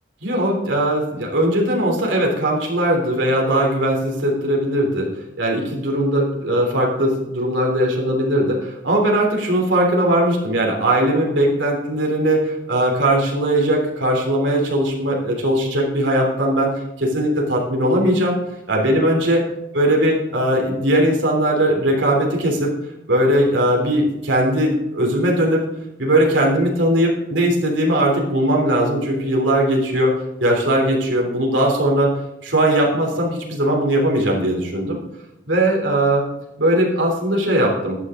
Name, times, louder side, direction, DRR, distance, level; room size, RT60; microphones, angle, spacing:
voice 1, 0.2-5.1 5.4-16.7 17.0-18.4 18.7-19.4 19.7-22.7 23.1-25.6 26.0-30.1 30.4-32.1 32.4-35.0 35.5-36.3 36.6-38.0, right 1 dB, 75° right, -1 dB, 3.4 m, -19 dB
14.5 x 9.5 x 3.8 m, 0.94 s
head